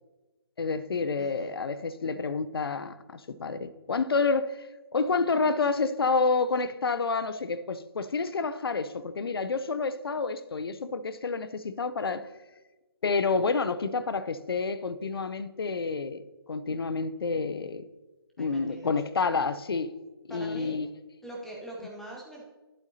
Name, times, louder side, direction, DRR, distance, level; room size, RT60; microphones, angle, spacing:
voice 1, 0.6-12.3 13.0-16.2 16.5-17.8 18.4-19.9 20.3-20.9, left 4 dB, 70° left, 0.6 m, -29 dB
voice 2, 1.2-1.5 5.6-5.7 18.4-19.0 20.3-20.7 21.2-22.4, right 1 dB, 5° left, 0.9 m, -43 dB
11.5 x 8.0 x 2.8 m
figure-of-eight pair, 150°, 13 cm